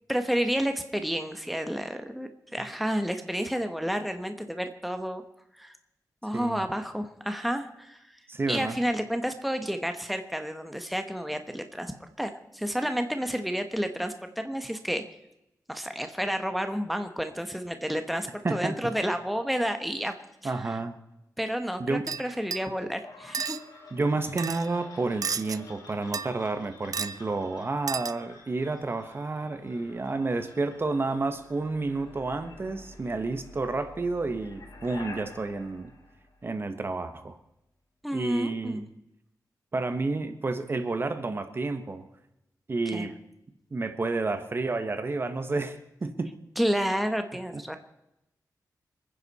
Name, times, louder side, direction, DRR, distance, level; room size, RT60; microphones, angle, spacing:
voice 1, 0.1-5.2 5.6-5.8 6.2-8.0 8.5-11.9 12.2-15.0 15.7-20.1 20.4-20.5 21.4-23.6 38.0-38.8 42.9-43.1 46.6-47.8, equal, ahead, 7 dB, 1.2 m, -30 dB
voice 2, 6.3-6.7 8.3-8.8 18.4-18.9 20.4-21.0 21.8-22.1 23.9-35.9 36.4-37.4 38.1-38.9 39.7-42.0 42.7-43.1 43.7-46.3, right 3 dB, 35° right, 9 dB, 1.3 m, -30 dB
sound 1, 22.1-22.8 23.3-23.6 24.4-24.7 25.2-25.6 26.1-26.6 26.9-27.2 27.9-28.3, right 6 dB, 65° right, 0.6 m, -33 dB
sound 2, 23.0-36.9, left 2 dB, 80° left, 4.1 m, -49 dB
27.5 x 10.0 x 4.2 m, 0.88 s
wide cardioid pair, 125°, 7 cm